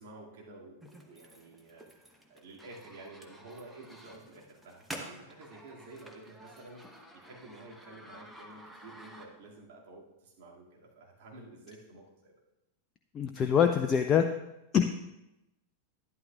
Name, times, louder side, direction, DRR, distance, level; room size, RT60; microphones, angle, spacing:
voice 1, 0.0-12.3, right 2 dB, 50° right, -4 dB, 2.3 m, -51 dB
sound 1, 0.8-9.6, equal, 5° right, 1.2 m, -50 dB
voice 2, 13.1-14.3 14.7-14.8, left 8 dB, 25° left, 6 dB, 0.5 m, -24 dB
11.5 x 11.0 x 2.4 m, 0.93 s
figure-of-eight pair, 90°, 0 cm